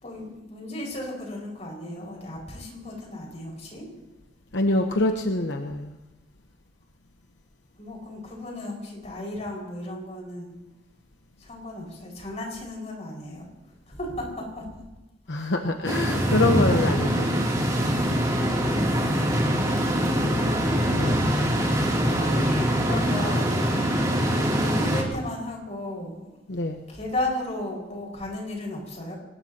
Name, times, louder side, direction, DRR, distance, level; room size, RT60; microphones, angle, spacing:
voice 1, 0.0-3.9 7.8-10.5 11.4-13.4 13.9-14.6 15.3-15.5 18.7-19.3 20.1-20.9 22.0-23.6 24.6-26.3 26.9-29.2, left 1 dB, 40° left, -1 dB, 5.5 m, -35 dB
voice 2, 4.5-5.9 15.3-17.3 20.8-21.3 26.5-26.8, left 2 dB, 80° left, 4 dB, 1.0 m, -25 dB
sound 1, 15.9-25.0, equal, 20° right, 2.9 m, -23 dB
24.5 x 19.5 x 2.9 m, 1.0 s
head